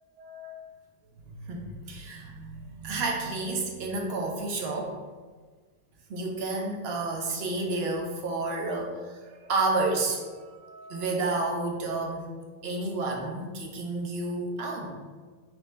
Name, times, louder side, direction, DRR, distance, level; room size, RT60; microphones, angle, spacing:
voice 1, 0.2-0.6 1.3-5.0 6.1-12.3 12.6-14.9, right 2 dB, 55° right, 0 dB, 0.7 m, -31 dB
5.7 x 2.0 x 3.3 m, 1.5 s
omnidirectional pair, 1.6 m